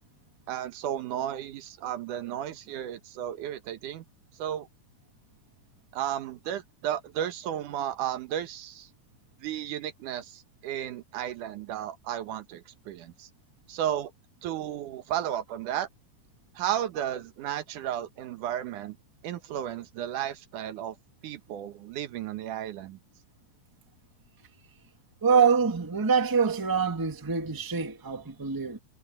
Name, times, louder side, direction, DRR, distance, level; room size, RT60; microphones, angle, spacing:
voice 1, 0.5-4.0 4.4-4.7 5.9-8.9 9.4-13.3 13.7-14.1 14.4-15.9 16.6-19.0 19.2-21.0 21.2-23.0, right 11 dB, 85° right, 2.7 m, -33 dB
voice 2, 25.2-28.8, right 6 dB, 10° right, 1.1 m, -25 dB
omnidirectional pair, 3.5 m